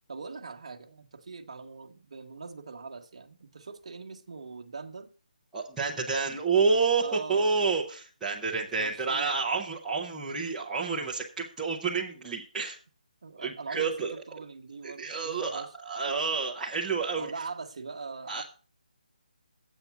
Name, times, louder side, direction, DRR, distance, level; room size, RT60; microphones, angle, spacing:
voice 1, 0.1-5.1 7.0-7.6 8.8-9.3 13.2-15.7 17.2-18.4, right 4 dB, 40° right, 0.9 m, -42 dB
voice 2, 5.5-12.8 13.4-14.1 14.8-17.4 18.3-18.4, right 4 dB, ahead, 0.5 m, -29 dB
8.0 x 5.7 x 7.0 m
hypercardioid pair, 180°, 5 cm